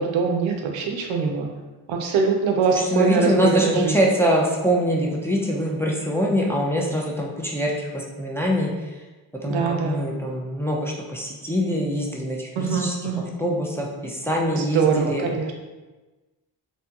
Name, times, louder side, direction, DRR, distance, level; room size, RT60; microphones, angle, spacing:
voice 1, 0.0-1.5 1.9-3.9 9.4-10.0 12.6-13.3 14.6-15.5, right 5 dB, 75° right, 2 dB, 0.6 m, -23 dB
voice 2, 2.7-9.0 9.4-12.9 13.4-15.3, equal, 5° left, -2 dB, 0.5 m, -24 dB
2.8 x 2.2 x 2.9 m, 1.2 s
supercardioid pair, 50°, 46 cm